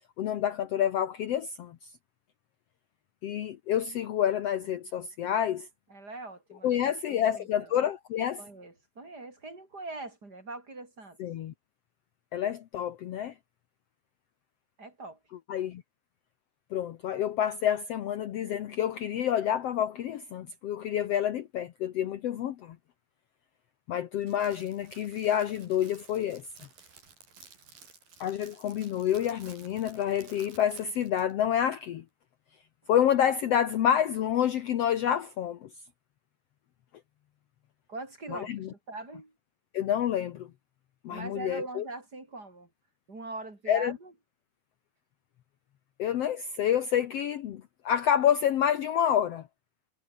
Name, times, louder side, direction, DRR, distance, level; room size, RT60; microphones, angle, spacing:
voice 1, 0.2-1.9 3.2-5.7 6.6-8.4 11.2-11.5 12.3-13.3 15.5-15.8 16.7-22.8 23.9-26.4 28.2-32.0 32.9-35.7 38.3-38.7 39.7-40.5 41.0-41.8 43.7-44.0 46.0-49.5, left 10 dB, 80° left, 1.4 m, -28 dB
voice 2, 5.9-6.8 7.1-7.8 8.4-11.2 14.8-15.2 37.9-39.3 41.1-42.7 43.1-44.1, right 2 dB, 25° right, 4.6 m, -42 dB
Crackle, 24.2-31.3, right 5 dB, 70° right, 6.9 m, -54 dB
omnidirectional pair, 4.3 m